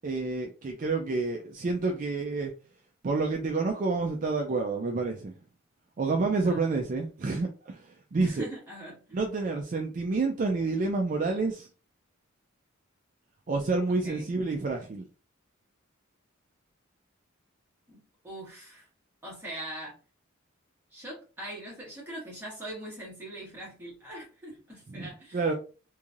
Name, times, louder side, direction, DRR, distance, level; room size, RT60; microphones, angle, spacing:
voice 1, 0.0-2.5 3.0-5.3 6.0-8.5 9.1-11.7 13.5-15.0 24.9-25.5, right 3 dB, 40° right, 0.3 m, -29 dB
voice 2, 6.4-6.8 8.2-9.2 13.9-14.3 17.9-18.9 19.2-20.0 20.9-25.4, right 1 dB, 10° right, 1.3 m, -42 dB
3.1 x 2.6 x 2.4 m
head